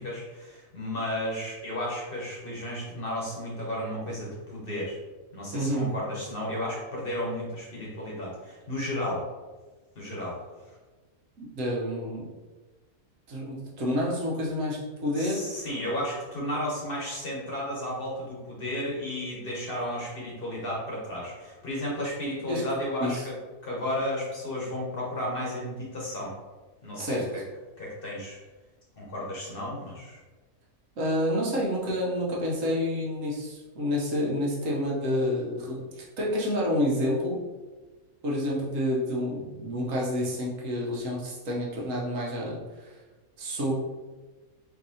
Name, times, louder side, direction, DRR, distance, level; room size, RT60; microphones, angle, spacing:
voice 1, 0.0-5.0 5.3-9.2 10.0-10.4 15.1-23.3 23.6-26.3 26.8-27.4 27.8-28.4 29.0-30.2, left 1 dB, 45° left, -4 dB, 1.0 m, -33 dB
voice 2, 5.5-5.9 11.4-12.3 13.3-15.4 22.5-22.6 23.0-23.2 27.0-27.2 31.0-37.4 38.2-43.0 43.4-43.7, equal, 70° right, -4 dB, 1.2 m, -29 dB
4.5 x 2.7 x 2.7 m, 1.3 s
omnidirectional pair, 1.5 m